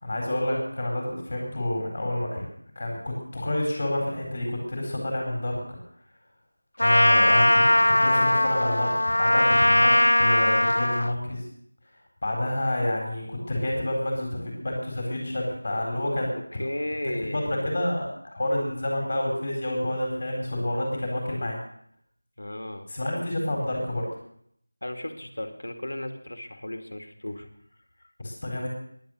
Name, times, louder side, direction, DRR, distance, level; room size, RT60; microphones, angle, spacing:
voice 1, 0.0-2.5 2.8-5.8 6.8-8.9 9.2-11.5 12.2-16.6 17.3-18.1 18.3-21.6 22.9-24.1 28.2-28.7, left 1 dB, 35° left, 0 dB, 4.1 m, -29 dB
Trumpet, 6.8-11.1, left 1 dB, 85° left, 0.9 m, -20 dB
voice 2, 16.5-17.5 22.4-22.9 24.8-27.5, left 1 dB, 70° left, 6 dB, 2.5 m, -34 dB
17.5 x 11.0 x 6.4 m, 0.68 s
figure-of-eight pair, 175°, 0 cm